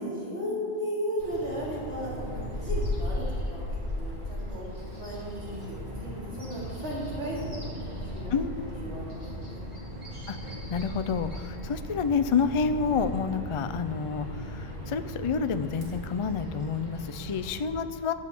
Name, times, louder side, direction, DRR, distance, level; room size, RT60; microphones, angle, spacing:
voice 1, 0.0-3.2 3.5-3.7 3.9-4.6 5.0-9.6, equal, 90° right, -8 dB, 4.6 m, -36 dB
Bird vocalization bird call bird song, 1.2-17.6, equal, 45° right, 2.6 m, -36 dB
voice 2, 8.3-8.7 10.3-18.1, left 5 dB, 50° left, 11 dB, 0.3 m, -29 dB
12.0 x 7.4 x 7.7 m, 2.1 s
omnidirectional pair, 1.1 m